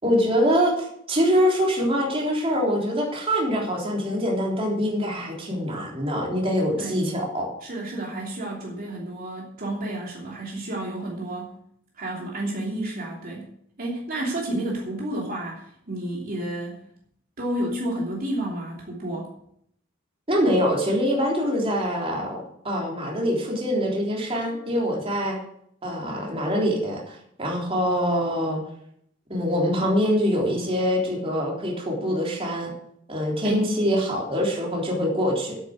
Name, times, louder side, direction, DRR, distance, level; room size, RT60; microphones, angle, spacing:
voice 1, 0.0-7.5 20.3-25.4 25.8-28.6 29.3-32.7 33.1-35.6, equal, 30° right, -2 dB, 3.5 m, -24 dB
voice 2, 7.6-11.5 11.9-13.5 13.8-16.8 17.4-19.3 33.4-33.7, right 1 dB, 45° right, -3 dB, 3.1 m, -31 dB
10.5 x 8.9 x 7.7 m, 0.70 s
head